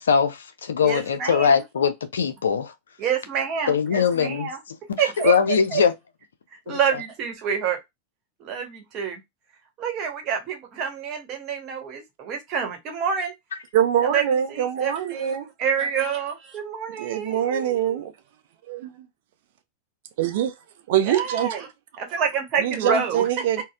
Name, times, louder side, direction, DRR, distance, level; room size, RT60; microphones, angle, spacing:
voice 1, 0.0-2.7 3.7-5.9 6.7-7.0, left 6 dB, 65° left, 0.4 m, -22 dB
voice 2, 0.8-1.6 3.0-4.6 5.0-5.3 5.7-5.8 6.7-7.8 8.4-9.2 9.8-13.3 14.1-14.2 14.5-15.3 15.6-18.0 21.1-21.6 22.0-23.2, right 7 dB, 35° right, 1.1 m, -27 dB
voice 3, 13.7-15.5 17.0-18.1 18.7-18.8 20.2-20.5 20.9-21.6 22.6-23.6, right 10 dB, 55° right, 0.4 m, -23 dB
4.0 x 2.0 x 2.4 m
figure-of-eight pair, 90°, 0 cm